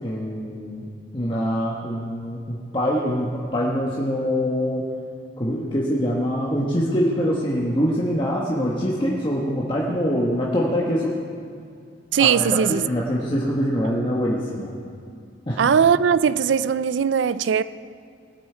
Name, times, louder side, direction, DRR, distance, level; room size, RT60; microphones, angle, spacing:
voice 1, 0.0-4.9 5.4-11.2 12.2-14.7 15.5-15.7, equal, 25° left, 1.2 m, -24 dB
voice 2, 12.1-12.8 15.6-17.6, right 7 dB, 80° right, 0.4 m, -19 dB
18.5 x 8.6 x 4.5 m
head